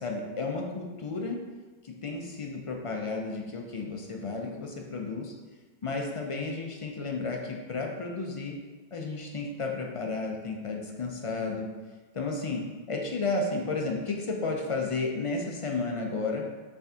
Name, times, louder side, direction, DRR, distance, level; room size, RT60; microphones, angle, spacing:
voice 1, 0.0-1.4 1.8-5.3 5.8-8.6 8.9-11.7 12.1-12.6 12.9-16.4, left 3 dB, 45° left, 1 dB, 0.4 m, -32 dB
5.8 x 3.3 x 2.7 m, 1.3 s
omnidirectional pair, 1.0 m